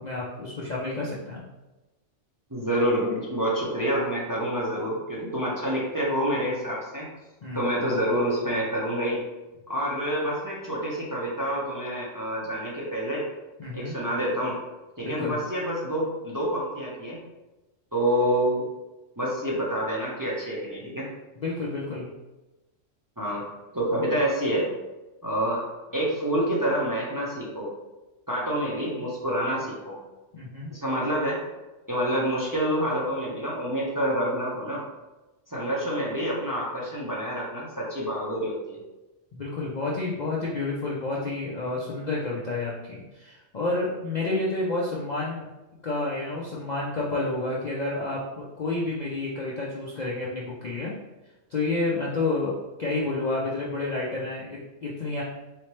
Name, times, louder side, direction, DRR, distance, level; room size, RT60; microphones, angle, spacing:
voice 1, 0.0-1.4 7.4-7.7 13.6-13.9 15.0-15.4 21.4-22.1 30.3-30.7 39.3-45.5 45.8-50.9 51.5-52.5 52.8-55.2, left 2 dB, 50° left, -5 dB, 0.5 m, -30 dB
voice 2, 2.5-7.1 7.5-9.2 9.7-13.3 13.7-14.6 15.0-17.2 17.9-18.6 19.2-21.1 23.2-23.4 23.7-24.7 25.2-25.6 25.9-27.7 28.3-30.0 30.7-31.4 31.9-34.8 35.5-38.8, equal, 20° right, -5 dB, 0.7 m, -27 dB
4.1 x 3.2 x 3.1 m, 1.1 s
omnidirectional pair, 1.3 m